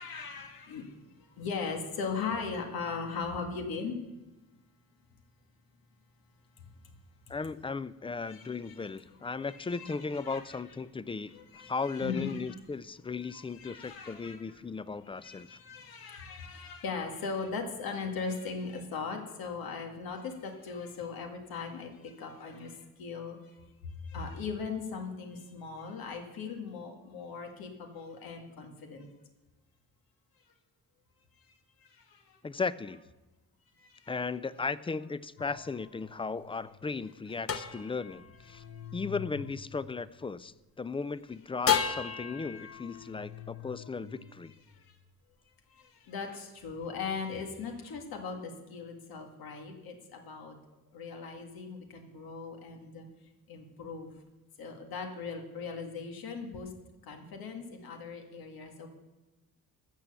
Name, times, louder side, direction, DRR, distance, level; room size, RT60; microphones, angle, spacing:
voice 1, 0.0-4.2 6.6-6.7 8.2-8.9 9.2-10.6 11.3-12.6 13.1-14.7 15.0-23.6 23.8-29.1 31.5-32.4 33.8-34.1 38.6-38.7 43.3-43.4 44.7-45.0 45.7-50.6 50.9-53.1 53.5-54.2 54.6-56.7 57.0-58.9, left 5 dB, 90° left, 3 dB, 1.9 m, -39 dB
voice 2, 7.3-15.6 32.4-33.0 34.1-38.6 38.9-44.5, left 4 dB, 15° left, 18 dB, 0.4 m, -36 dB
sound 1, 35.4-40.7 41.7-45.0, left 7 dB, 40° left, 1.1 m, -36 dB
14.0 x 7.4 x 6.9 m, 1.1 s
cardioid pair, 95°, 35 cm